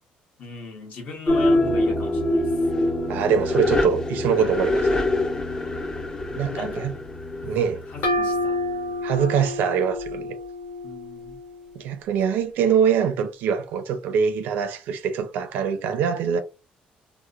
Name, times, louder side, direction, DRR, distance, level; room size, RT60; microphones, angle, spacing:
voice 1, 0.4-2.6 6.3-6.9 7.6-8.6 10.8-11.4, left 3 dB, 55° left, 1.0 m, -38 dB
sound 1, 1.3-8.7, left 1 dB, 25° left, 0.4 m, -24 dB
voice 2, 3.1-5.0 6.4-6.9 7.4-7.8 9.0-10.4 11.8-16.4, right 7 dB, 90° right, 0.5 m, -23 dB
sound 2, 8.0-11.6, left 1 dB, 90° left, 0.9 m, -29 dB
2.8 x 2.1 x 2.4 m
cardioid pair, 140°, 3 cm